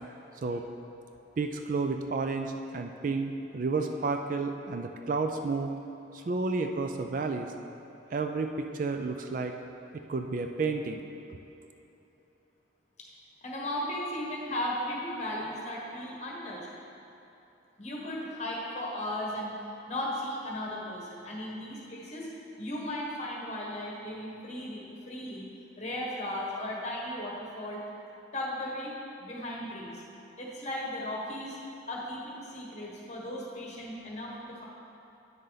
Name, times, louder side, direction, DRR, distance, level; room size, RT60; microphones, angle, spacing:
voice 1, 1.4-5.7 6.1-7.5 8.1-9.5 9.9-11.0, right 4 dB, 45° right, 5 dB, 0.3 m, -31 dB
voice 2, 13.4-16.7 17.8-19.6 19.9-22.3 22.6-25.5 25.8-27.8 28.3-30.0 30.4-31.6 31.9-34.6, left 1 dB, 35° left, -3 dB, 1.3 m, -36 dB
8.9 x 6.5 x 4.0 m, 2.9 s
head